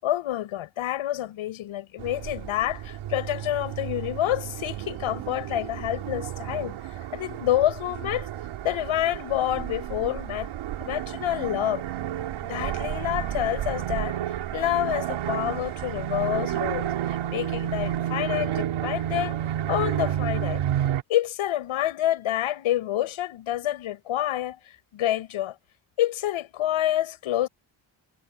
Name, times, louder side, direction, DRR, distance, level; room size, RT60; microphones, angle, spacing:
voice 1, 0.0-6.8 7.1-8.3 8.6-10.5 10.8-11.8 12.5-14.2 14.5-19.4 19.7-20.6 21.1-24.6 24.9-25.6 26.0-27.5, left 13 dB, 90° left, 7.4 m, -28 dB
sound 1, 2.0-21.0, right 11 dB, 90° right, 4.3 m, -31 dB
cardioid pair, 85°, 47 cm